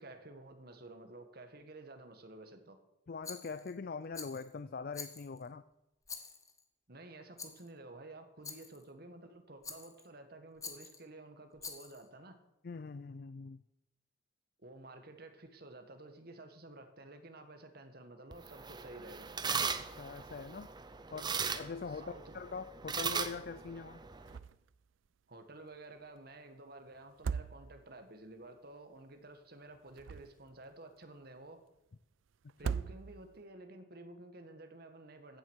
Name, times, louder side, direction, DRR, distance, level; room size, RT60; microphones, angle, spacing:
voice 1, 0.0-2.8 6.9-12.4 14.6-19.3 21.1-21.3 21.9-22.3 25.3-31.6 32.6-35.4, right 2 dB, 55° right, 7 dB, 1.6 m, -52 dB
voice 2, 3.1-5.7 12.6-13.6 19.8-20.7 21.1-21.3 21.5-24.0 32.6-32.7, left 4 dB, 50° left, 14 dB, 0.4 m, -43 dB
Rattle, 3.2-3.7 4.1-4.5 4.9-5.5 6.1-6.6 7.4-7.7 8.4-8.8 9.6-10.1 10.6-11.0 11.6-12.1, left 5 dB, 15° left, 1.2 m, -47 dB
sound 1, 18.3-24.4, right 5 dB, 20° right, 0.7 m, -39 dB
sound 2, 24.3-24.8 25.1-25.2 27.0-28.0 29.7-30.6 32.5-33.4, right 6 dB, 90° right, 0.4 m, -39 dB
15.0 x 7.7 x 6.4 m, 0.91 s
head